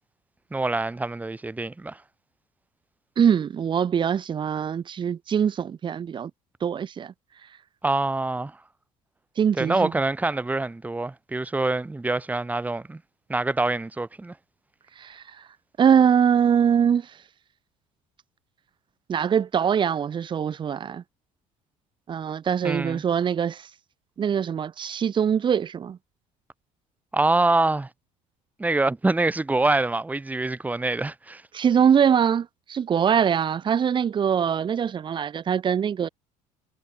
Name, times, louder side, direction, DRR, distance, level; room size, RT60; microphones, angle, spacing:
voice 1, 0.5-2.0 7.8-8.6 9.6-13.0 13.3-14.3 22.6-23.0 27.1-27.9 28.6-31.4, right 2 dB, 10° right, 4.3 m, -25 dB
voice 2, 3.2-6.3 6.6-7.1 9.4-9.9 15.0-15.4 15.8-17.1 19.1-21.0 22.1-23.7 24.2-26.0 31.5-36.1, right 8 dB, 35° right, 3.3 m, -23 dB
cardioid pair, 135°, 14 cm